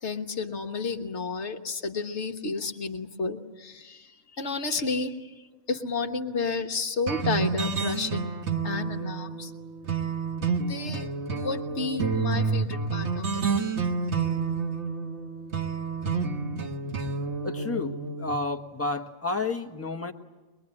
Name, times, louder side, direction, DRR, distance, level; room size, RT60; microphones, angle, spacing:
voice 1, 0.0-4.1 4.4-5.3 5.7-8.3 8.6-9.5 10.6-13.6, left 4 dB, 55° left, 5 dB, 1.5 m, -31 dB
sound 1, 7.1-18.4, right 5 dB, 55° right, 1.6 m, -29 dB
voice 2, 17.4-20.1, left 3 dB, 10° left, 3 dB, 1.2 m, -31 dB
23.5 x 21.5 x 9.8 m, 1.2 s
omnidirectional pair, 1.4 m